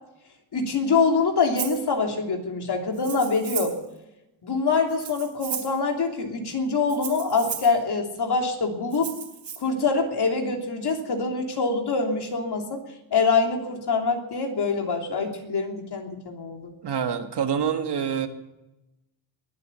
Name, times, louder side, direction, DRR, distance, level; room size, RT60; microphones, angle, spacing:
voice 1, 0.5-3.8 4.4-9.1 9.6-12.8 13.1-16.7, left 4 dB, 55° left, 2 dB, 3.1 m, -25 dB
Rattle (instrument), 1.6-1.8 2.9-3.8 4.9-5.8 6.9-7.7 8.9-9.6, right 8 dB, 75° right, 3.7 m, -35 dB
voice 2, 16.8-18.3, right 7 dB, 60° right, 6 dB, 1.8 m, -26 dB
21.5 x 8.4 x 6.9 m, 0.94 s
cardioid pair, 95°, 46 cm